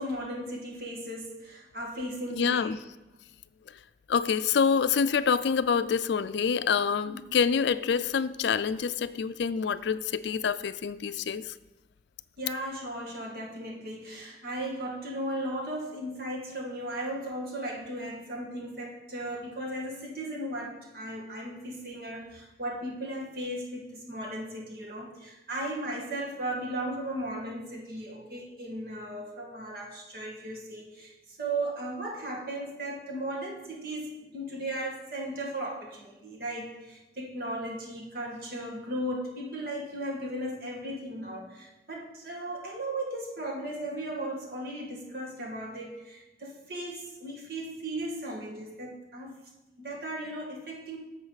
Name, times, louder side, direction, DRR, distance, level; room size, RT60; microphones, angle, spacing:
voice 1, 0.0-2.7 7.0-7.2 12.4-49.4 49.8-51.0, right 1 dB, 55° right, -1 dB, 1.9 m, -36 dB
voice 2, 2.3-2.8 4.1-11.5, left 6 dB, 75° left, 15 dB, 0.4 m, -26 dB
11.0 x 6.9 x 4.0 m, 1.0 s
head